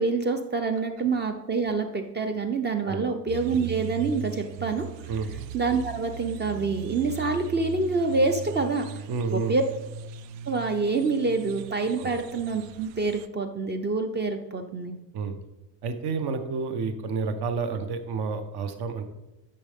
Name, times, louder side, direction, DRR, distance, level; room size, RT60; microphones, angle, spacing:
voice 1, 0.0-4.9 5.5-9.0 9.3-9.6 10.5-15.0, right 3 dB, 25° right, 6 dB, 0.4 m, -26 dB
sound 1, 3.3-13.3, right 10 dB, 90° right, 0.6 m, -39 dB
voice 2, 9.1-9.5 12.0-12.1 15.1-15.3 15.8-19.0, right 5 dB, 65° right, 8 dB, 1.0 m, -30 dB
12.0 x 5.5 x 3.5 m, 0.97 s
cardioid pair, 175°, 43 cm